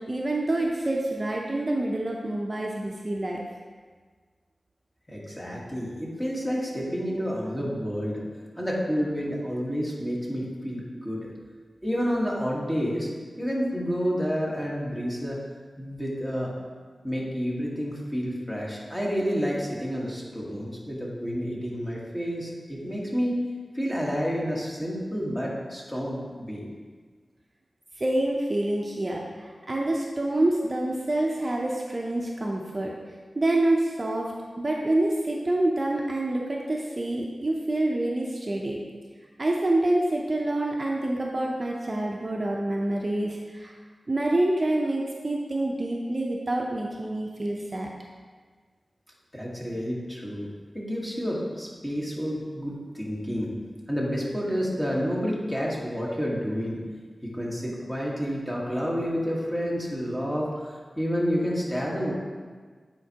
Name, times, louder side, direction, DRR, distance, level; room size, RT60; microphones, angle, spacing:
voice 1, 0.0-3.4 28.0-32.9 33.3-34.3 34.6-38.8 39.4-43.7 44.1-47.9, right 1 dB, 35° right, -1 dB, 0.6 m, -27 dB
voice 2, 5.1-8.2 8.6-11.3 11.8-13.1 13.4-15.4 15.8-16.5 17.0-23.4 23.7-26.7 49.3-53.5 53.9-56.8 57.2-62.1, equal, 10° left, -4 dB, 1.4 m, -29 dB
8.8 x 4.5 x 2.9 m, 1.5 s
wide cardioid pair, 70°, 0 cm